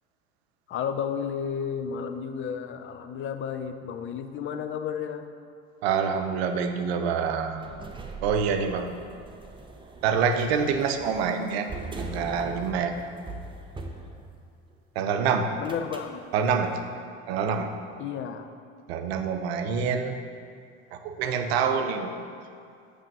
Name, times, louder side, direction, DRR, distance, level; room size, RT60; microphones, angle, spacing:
voice 1, 0.7-5.3 15.6-16.8 18.0-18.5, left 7 dB, 40° left, 8 dB, 0.5 m, -32 dB
voice 2, 5.8-7.7 8.2-9.0 10.0-12.9 15.0-15.6 16.3-16.8 17.3-17.7 18.9-20.2 20.9-22.2, right 6 dB, 80° right, 7 dB, 0.6 m, -26 dB
sound 1, 7.6-14.7 15.6-16.2, right 2 dB, 15° right, 0.6 m, -41 dB
7.3 x 3.4 x 5.3 m, 2.4 s
supercardioid pair, 85°, 31 cm